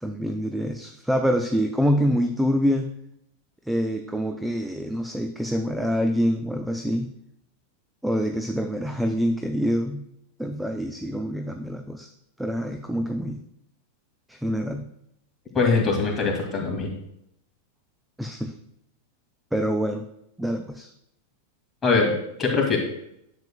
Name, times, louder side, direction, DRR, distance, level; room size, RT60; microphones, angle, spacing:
voice 1, 0.0-2.9 3.7-7.1 8.0-10.1 10.4-12.1 12.4-13.4 14.3-14.8 18.2-18.5 19.5-20.0 20.4-20.9, equal, 5° right, 5 dB, 0.5 m, -26 dB
voice 2, 15.5-16.9 21.8-22.1 22.4-22.8, left 4 dB, 20° left, 0 dB, 2.2 m, -22 dB
10.5 x 7.3 x 2.3 m, 0.77 s
figure-of-eight pair, 90°, 0 cm